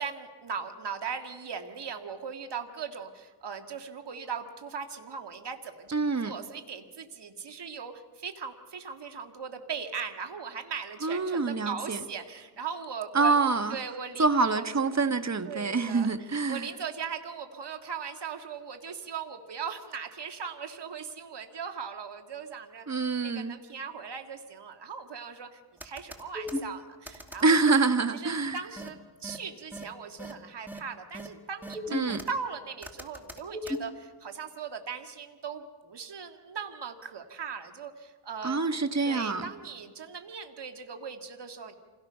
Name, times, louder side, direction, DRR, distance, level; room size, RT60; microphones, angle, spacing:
voice 1, 0.0-5.9 6.2-13.3 13.7-14.3 14.5-14.7 15.5-16.1 16.5-27.8 28.1-38.8 39.0-41.7, right 6 dB, 60° right, 1.9 m, -39 dB
voice 2, 5.9-6.3 11.0-12.0 13.1-13.8 14.2-16.7 22.9-23.6 27.4-28.6 31.9-32.2 38.4-39.4, right 4 dB, 35° right, 1.3 m, -26 dB
sound 1, 25.8-26.6 27.1-27.4 28.8-28.9 29.2-29.4 29.7-29.8 30.2-30.3 30.7-30.8 31.1-31.3 31.6-32.3 32.8-33.8, left 1 dB, 5° right, 2.0 m, -36 dB
27.0 x 17.5 x 5.6 m
cardioid pair, 75°, 46 cm